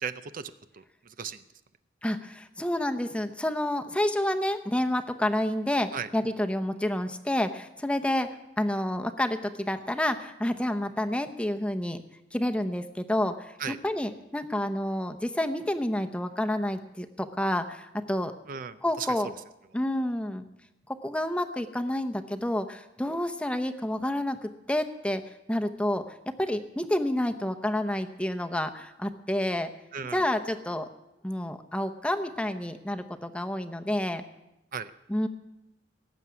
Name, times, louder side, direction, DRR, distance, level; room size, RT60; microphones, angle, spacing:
voice 1, 0.0-1.4 5.9-6.1 13.6-13.8 18.5-19.1 29.9-30.3 34.7-34.9, right 6 dB, 50° right, 13 dB, 0.6 m, -36 dB
voice 2, 2.0-12.0 12.3-18.3 18.8-19.3 19.7-20.4 20.9-25.2 25.5-26.0 26.4-29.7 30.1-30.9 31.2-34.2 35.1-35.3, left 1 dB, 5° left, 7 dB, 0.9 m, -29 dB
18.5 x 7.5 x 9.4 m, 0.89 s
head